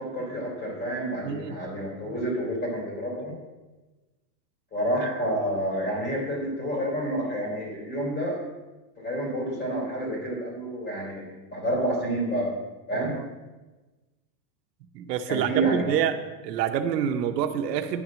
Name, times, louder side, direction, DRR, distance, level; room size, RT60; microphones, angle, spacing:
voice 1, 0.0-3.3 4.7-8.4 9.0-12.5 12.9-13.1 15.3-16.0, right 1 dB, 20° left, -1 dB, 3.4 m, -29 dB
voice 2, 1.2-1.6 12.9-13.2 14.9-16.1 16.4-18.0, right 9 dB, 85° right, 7 dB, 1.0 m, -27 dB
10.0 x 6.0 x 6.3 m, 1.2 s
supercardioid pair, 165°, 48 cm